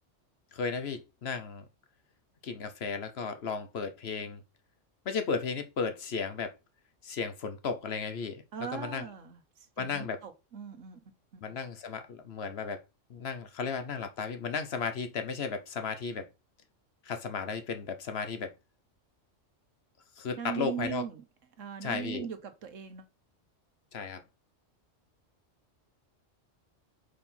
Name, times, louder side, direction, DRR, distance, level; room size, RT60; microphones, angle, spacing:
voice 1, 0.5-1.6 2.4-4.4 5.0-6.6 7.0-8.4 8.7-9.0 9.8-10.2 11.4-12.8 13.1-16.3 17.0-18.5 20.2-21.0 21.8-22.2 23.9-24.2, left 5 dB, 60° left, 1.0 m, -34 dB
voice 2, 8.5-11.6 20.4-21.2 21.6-23.1, right 8 dB, 80° right, 1.4 m, -40 dB
5.0 x 4.4 x 5.4 m
omnidirectional pair, 1.3 m